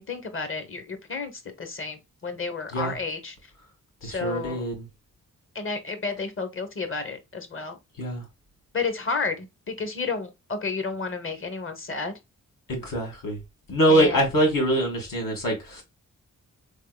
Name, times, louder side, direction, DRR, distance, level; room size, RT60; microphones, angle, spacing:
voice 1, 0.0-1.3 1.6-3.4 4.0-4.6 5.5-7.8 8.7-12.1 13.9-14.2, left 4 dB, 40° left, 0.9 m, -31 dB
voice 2, 4.0-4.9 8.0-8.3 12.7-13.4 13.7-15.8, right 1 dB, 80° left, 1.9 m, -24 dB
3.6 x 3.5 x 2.2 m
cardioid pair, 90°, 33 cm